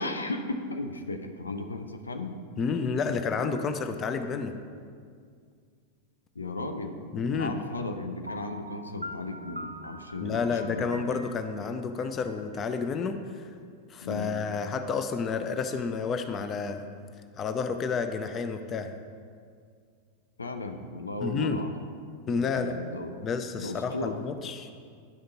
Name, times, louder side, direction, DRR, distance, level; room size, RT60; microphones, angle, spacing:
voice 1, 0.0-2.4 6.4-7.0 7.3-11.1 14.0-14.3 20.4-21.7 22.3-23.3 23.6-24.2, left 2 dB, 75° left, 6 dB, 0.5 m, -35 dB
voice 2, 2.6-4.5 7.1-7.6 10.2-13.4 13.9-16.9 17.4-18.9 21.2-21.6 22.3-22.8 23.2-24.7, left 5 dB, 25° left, 8 dB, 0.5 m, -30 dB
Piano, 8.3-13.1, equal, 85° right, 0.3 m, -44 dB
10.5 x 5.1 x 4.0 m, 2.1 s
figure-of-eight pair, 90°, 0 cm